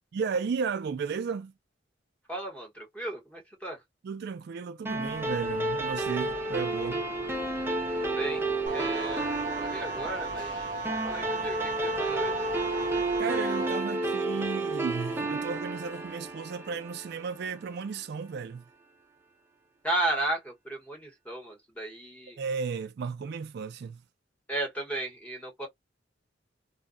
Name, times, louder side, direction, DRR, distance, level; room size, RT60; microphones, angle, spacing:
voice 1, 0.1-1.5 4.0-7.1 13.2-18.6 22.4-24.0, right 5 dB, 60° right, 0.3 m, -34 dB
voice 2, 2.3-3.8 8.0-10.7 11.0-12.3 19.8-22.4 24.5-25.7, right 2 dB, 10° left, 1.0 m, -34 dB
sound 1, 4.9-13.2, left 3 dB, 80° left, 0.9 m, -47 dB
sound 2, 4.9-17.6, right 2 dB, 15° right, 0.5 m, -31 dB
sound 3, 8.7-13.7, right 3 dB, 40° right, 0.8 m, -35 dB
2.8 x 2.1 x 2.4 m
head